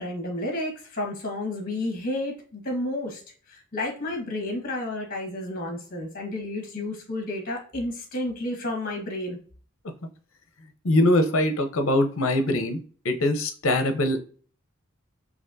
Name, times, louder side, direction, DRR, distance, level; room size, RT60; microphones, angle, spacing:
voice 1, 0.0-3.2 3.7-9.4, left 1 dB, 40° left, 2 dB, 1.3 m, -31 dB
voice 2, 10.8-12.8 13.0-14.2, left 1 dB, 65° left, 7 dB, 0.7 m, -22 dB
4.1 x 2.9 x 2.6 m, 0.43 s
head